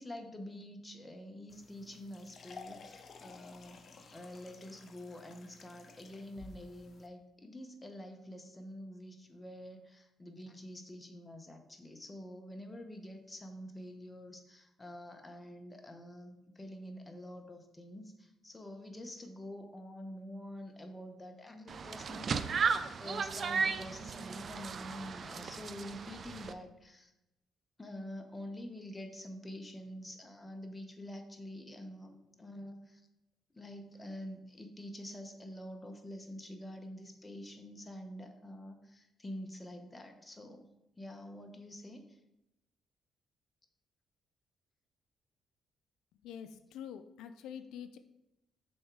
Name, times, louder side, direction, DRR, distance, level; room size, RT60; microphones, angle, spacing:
voice 1, 0.0-27.1 27.8-33.0 33.5-40.7 41.0-42.2, left 1 dB, 15° left, 5 dB, 0.9 m, -47 dB
sound 1, 1.5-7.1, left 4 dB, 50° left, 0.6 m, -54 dB
sound 2, 21.7-26.5, right 5 dB, 50° right, 0.4 m, -35 dB
voice 2, 46.2-48.0, left 8 dB, 85° left, 9 dB, 0.3 m, -46 dB
6.1 x 3.6 x 4.7 m, 0.88 s
cardioid pair, 90°, 0 cm